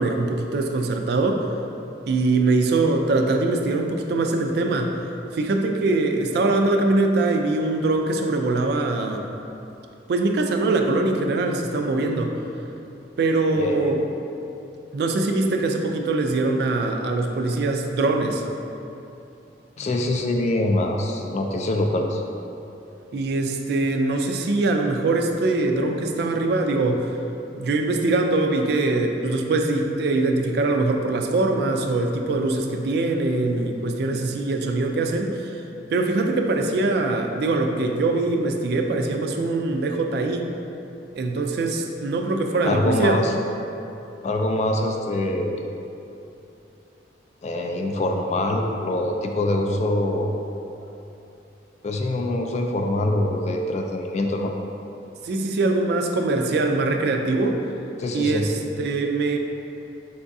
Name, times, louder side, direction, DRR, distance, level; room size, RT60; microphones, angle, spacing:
voice 1, 0.0-1.5 2.1-5.0 5.3-9.3 10.1-12.4 13.2-14.0 14.9-18.4 23.1-27.1 27.6-35.6 35.9-40.5 41.1-43.2 55.2-57.6 58.1-59.4, right 2 dB, 60° right, 4 dB, 0.3 m, -22 dB
voice 2, 13.5-14.0 19.8-22.2 42.6-43.3 44.2-45.6 47.4-50.3 51.8-54.5 58.0-58.5, left 1 dB, 40° left, 3 dB, 0.3 m, -24 dB
4.7 x 3.5 x 2.6 m, 2.8 s
head